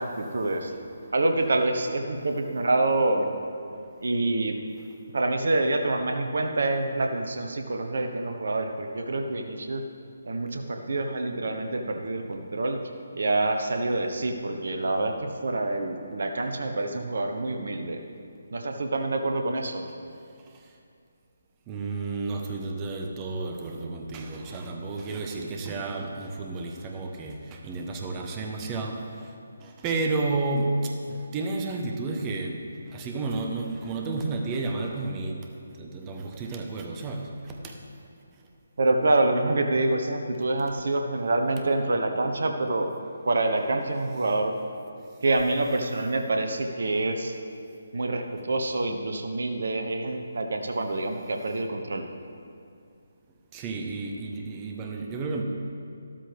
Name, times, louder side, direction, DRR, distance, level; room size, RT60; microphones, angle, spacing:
voice 1, 0.0-0.7 1.1-3.3 4.0-4.6 5.1-9.8 10.2-12.8 13.1-18.0 18.5-19.8 38.8-42.9 43.2-44.5 45.2-47.3 47.9-52.1, right 2 dB, 65° right, 5 dB, 1.1 m, -26 dB
voice 2, 0.7-1.1 21.7-29.3 29.6-35.5 35.8-37.8 53.5-55.4, right 3 dB, 20° right, 2 dB, 1.0 m, -32 dB
13.0 x 12.5 x 3.5 m, 2.4 s
figure-of-eight pair, 145°, 0 cm